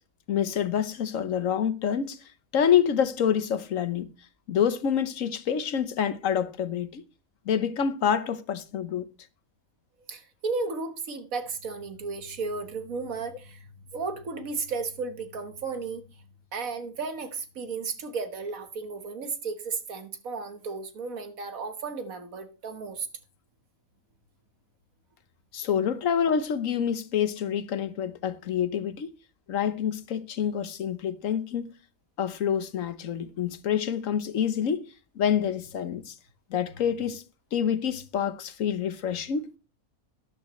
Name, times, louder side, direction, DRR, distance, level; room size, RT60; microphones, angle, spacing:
voice 1, 0.3-2.2 2.5-4.1 4.5-7.0 7.5-9.1 25.5-29.1 29.5-31.7 32.2-34.9 35.2-36.1 36.5-37.2 37.5-39.5, left 8 dB, 70° left, 1.3 m, -27 dB
voice 2, 10.1-16.0 16.5-23.1, right 4 dB, 75° right, 1.8 m, -34 dB
13.0 x 10.5 x 3.1 m
omnidirectional pair, 1.5 m